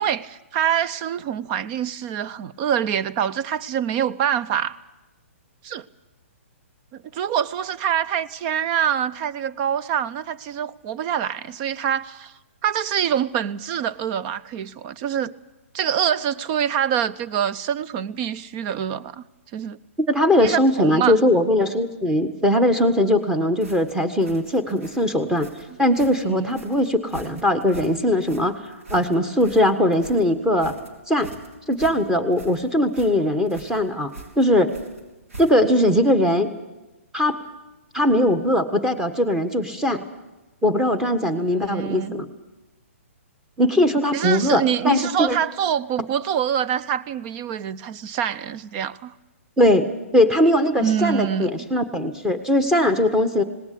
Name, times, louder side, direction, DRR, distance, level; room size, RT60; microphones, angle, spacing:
voice 1, 0.0-4.8 5.6-5.8 7.1-12.3 12.6-15.3 15.7-19.2 19.5-19.8 20.4-21.2 26.3-26.5 41.5-42.1 44.1-49.1 50.8-51.5, right 9 dB, 35° right, 0.6 m, -25 dB
voice 2, 20.1-25.5 25.8-28.6 28.9-30.7 31.1-31.3 31.7-34.1 34.4-34.7 35.4-36.5 37.1-37.4 37.9-40.0 40.6-42.3 43.6-45.4 49.6-53.4, left 1 dB, 5° right, 1.5 m, -20 dB
sound 1, 23.6-35.8, right 2 dB, 80° right, 4.1 m, -44 dB
19.0 x 18.5 x 8.5 m
hypercardioid pair, 140°, 8 cm